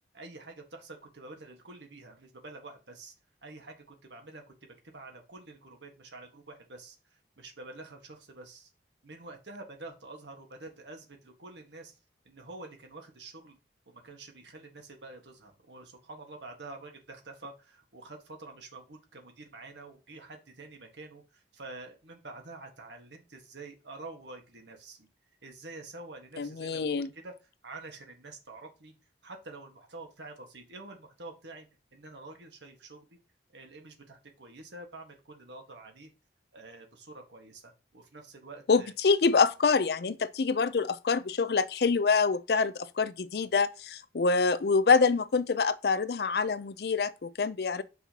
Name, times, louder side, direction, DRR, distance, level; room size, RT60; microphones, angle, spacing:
voice 1, 0.1-3.1 3.4-4.4 4.9-8.7 9.0-12.0 12.2-13.6 13.9-25.1 25.4-27.3 27.6-28.9 29.2-33.1 33.5-36.1 36.5-38.9, right 2 dB, 85° right, 1.5 m, -47 dB
voice 2, 26.4-27.1 38.7-47.8, left 4 dB, 60° left, 0.5 m, -26 dB
7.2 x 5.6 x 2.9 m
head